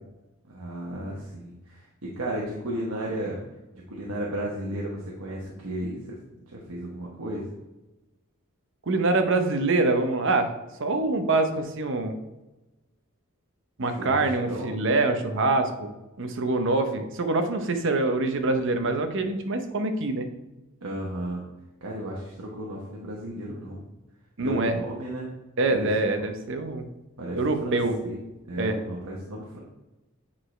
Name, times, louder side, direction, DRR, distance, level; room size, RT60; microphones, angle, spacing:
voice 1, 0.5-3.4 3.7-6.2 6.4-7.4 13.8-14.8 20.8-21.4 21.8-23.8 24.4-25.3 25.7-26.4 27.2-28.2 28.4-29.6, right 1 dB, 80° right, -4 dB, 1.2 m, -34 dB
voice 2, 8.9-10.5 10.8-12.2 13.8-15.9 16.2-20.3 24.4-24.8 25.6-26.8 27.3-27.9 28.6-28.8, right 2 dB, 60° right, 7 dB, 0.8 m, -25 dB
8.6 x 4.8 x 3.3 m, 1.0 s
head